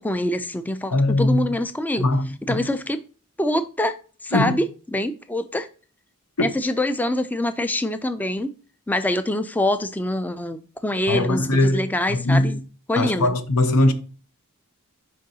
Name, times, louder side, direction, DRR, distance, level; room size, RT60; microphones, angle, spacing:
voice 1, 0.0-2.0 2.4-3.0 3.4-4.0 4.2-5.7 6.4-8.5 8.9-12.6 12.9-13.3, left 1 dB, 5° left, 0.3 m, -25 dB
voice 2, 0.9-1.5 2.0-2.6 4.3-4.6 6.4-6.5 11.1-12.6 13.0-13.9, left 2 dB, 90° left, 0.9 m, -21 dB
6.4 x 5.4 x 2.8 m
head